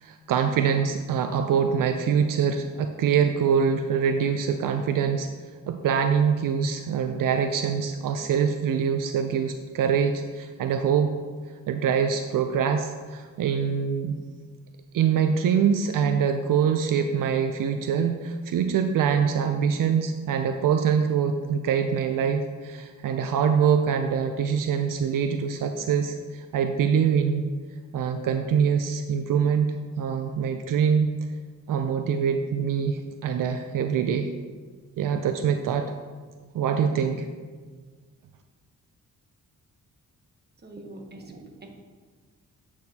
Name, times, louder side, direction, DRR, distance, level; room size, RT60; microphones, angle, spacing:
voice 1, 0.0-5.3 5.7-11.1 11.7-14.2 14.9-27.5 27.9-31.1 31.7-34.3 35.0-35.9 36.5-37.3, right 7 dB, 75° right, 6 dB, 0.5 m, -24 dB
voice 2, 40.6-41.7, right 2 dB, 30° right, 2 dB, 1.0 m, -43 dB
8.3 x 6.1 x 2.8 m, 1.5 s
cardioid pair, 100°, 33 cm